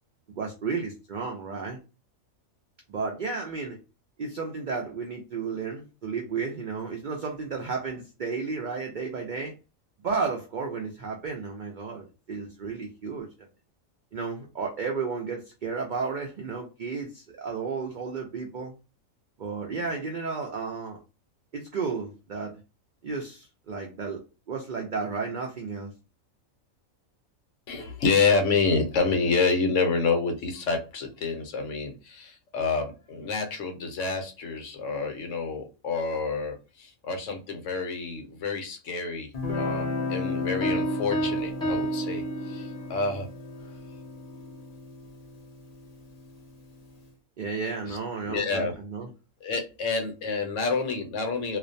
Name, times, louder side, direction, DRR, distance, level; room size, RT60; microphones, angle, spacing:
voice 1, 0.4-1.8 2.9-3.8 4.2-9.5 10.0-13.3 14.1-18.7 19.4-21.0 21.5-22.6 23.0-24.2 24.5-25.9 47.4-49.1, right 5 dB, 80° right, 0 dB, 0.4 m, -33 dB
voice 2, 27.7-39.3 39.6-43.3 47.8-48.0 48.3-48.7 49.4-51.6, left 4 dB, 70° left, 4 dB, 0.9 m, -28 dB
Guitar, 39.3-46.5, left 3 dB, 45° left, 0.5 m, -34 dB
Piano, 40.6-43.0, right 2 dB, 5° left, 0.6 m, -30 dB
2.4 x 2.0 x 2.5 m, 0.30 s
omnidirectional pair, 1.4 m